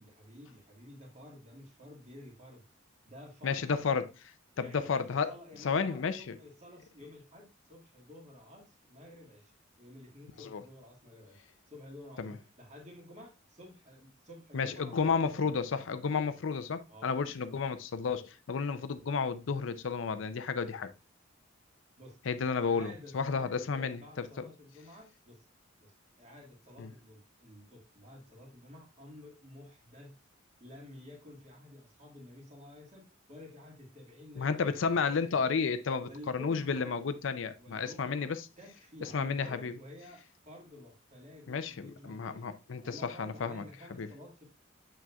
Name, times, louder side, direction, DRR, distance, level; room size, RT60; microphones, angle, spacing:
voice 1, 0.0-2.6 3.0-3.7 4.6-9.5 9.8-15.6 16.9-17.2 17.4-17.6 22.0-22.2 22.6-25.4 25.8-30.2 30.6-34.6 36.0-36.9 37.6-42.5 42.8-44.4, left 1 dB, 35° right, 1.9 m, -51 dB
voice 2, 3.4-4.3 4.6-5.3 5.6-6.3 10.5-10.6 12.2-12.3 14.5-20.9 22.3-24.0 26.8-26.9 34.4-38.4 39.0-39.7 41.5-43.6 44.0-44.1, left 5 dB, 70° left, 0.5 m, -32 dB
7.1 x 6.1 x 2.3 m
head